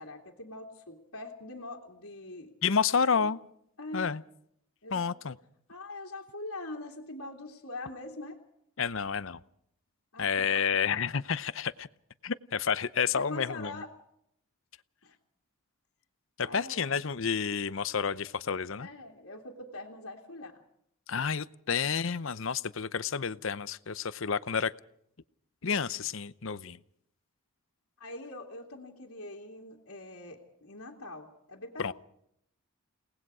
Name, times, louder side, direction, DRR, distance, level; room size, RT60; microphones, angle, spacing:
voice 1, 0.0-2.5 3.1-3.3 3.8-4.2 4.8-5.1 5.7-8.4 10.1-10.5 13.1-13.9 15.0-15.1 16.4-17.0 18.8-20.6 28.0-31.9, left 2 dB, 80° left, -5 dB, 2.6 m, -43 dB
voice 2, 2.6-3.4 3.9-4.2 4.9-5.4 8.8-9.4 10.2-11.9 12.2-13.7 16.4-18.9 21.1-24.7 25.6-26.8 31.8-31.9, left 6 dB, 60° left, 16 dB, 0.7 m, -30 dB
30.0 x 19.0 x 4.9 m, 0.72 s
head